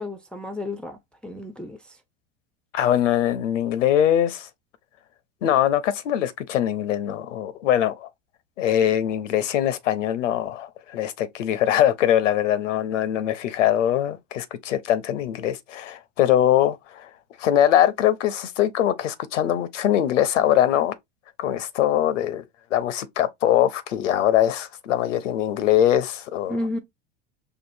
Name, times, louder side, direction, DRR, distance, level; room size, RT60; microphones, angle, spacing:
voice 1, 0.0-1.8 26.5-26.8, left 1 dB, 5° left, 0.4 m, -32 dB
voice 2, 2.7-4.5 5.4-8.1 8.6-17.1 17.4-21.0 21.4-22.4 22.7-26.6, left 11 dB, 90° left, 0.7 m, -22 dB
4.6 x 2.5 x 2.6 m
hypercardioid pair, 95°, 36 cm